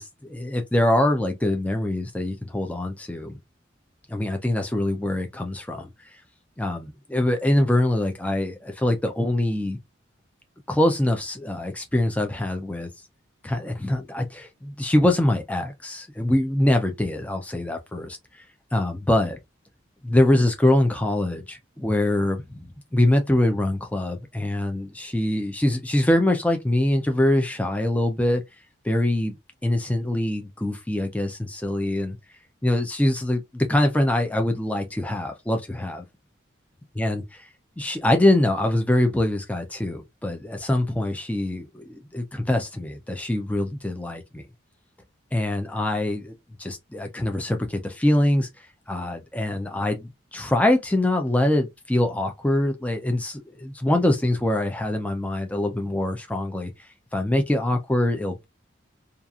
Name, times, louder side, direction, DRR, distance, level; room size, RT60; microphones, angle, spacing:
voice 1, 0.0-3.4 4.1-5.9 6.6-9.8 10.7-12.9 13.4-18.2 18.7-19.4 20.0-22.6 22.9-28.4 28.8-29.4 29.6-32.2 32.6-36.0 37.0-37.2 37.8-44.4 45.3-46.3 46.6-48.5 48.9-56.7 57.1-58.4, left 1 dB, 5° left, 0.4 m, -24 dB
2.8 x 2.4 x 2.3 m
head